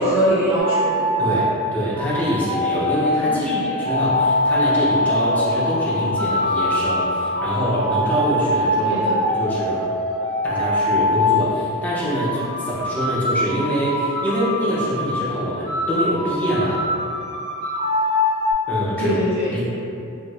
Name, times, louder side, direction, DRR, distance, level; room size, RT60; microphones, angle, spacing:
voice 1, 0.0-1.1 3.2-3.7 8.8-9.2 19.0-19.7, equal, 25° right, -13 dB, 1.2 m, -22 dB
sound 1, 0.6-1.5 1.9-5.7 6.2-11.5 12.0-15.3 15.7-18.5, left 1 dB, 65° right, 1.5 m, -24 dB
voice 2, 1.2-9.0 9.3-9.9 10.4-16.9 18.7-19.1 19.5-19.7, equal, 5° left, -9 dB, 0.6 m, -24 dB
sound 2, 3.8-9.3, left 2 dB, 50° right, 0.8 m, -24 dB
2.6 x 2.5 x 3.1 m, 2.7 s
head